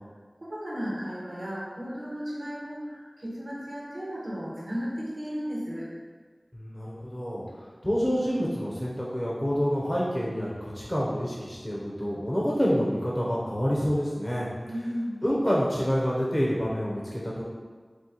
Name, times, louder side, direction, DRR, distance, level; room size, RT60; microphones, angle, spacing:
voice 1, 0.4-5.9 14.6-15.2, equal, 90° right, -7 dB, 1.2 m, -34 dB
voice 2, 6.5-7.4 7.8-14.5 15.2-17.4, equal, 20° left, -5 dB, 0.7 m, -27 dB
6.2 x 2.2 x 2.9 m, 1.5 s
wide cardioid pair, 45°, 0 cm